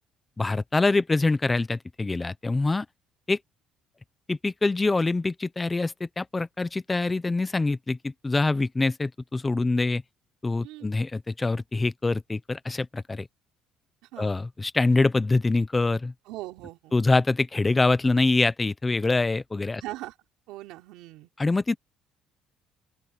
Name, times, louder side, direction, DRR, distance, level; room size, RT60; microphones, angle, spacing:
voice 1, 0.4-2.9 3.3-3.4 4.3-10.0 10.4-13.3 14.2-16.1 16.9-19.8 21.4-21.8, left 3 dB, 15° left, 0.8 m, -25 dB
voice 2, 16.3-16.9 19.8-20.1 20.5-21.3, right 17 dB, 90° right, 4.1 m, -40 dB
open air
cardioid pair, 155°, 0 cm